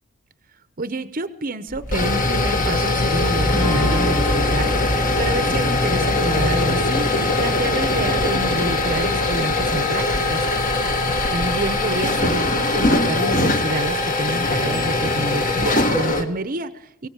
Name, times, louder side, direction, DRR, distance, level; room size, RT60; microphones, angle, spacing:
voice 1, 0.8-10.4 11.3-17.1, right 2 dB, 40° right, 12 dB, 0.9 m, -28 dB
sound 1, 1.7-16.2, left 2 dB, 40° left, 1.8 m, -21 dB
sound 2, 3.5-8.4, left 2 dB, 90° left, 4.7 m, -32 dB
23.5 x 17.0 x 7.5 m, 0.80 s
head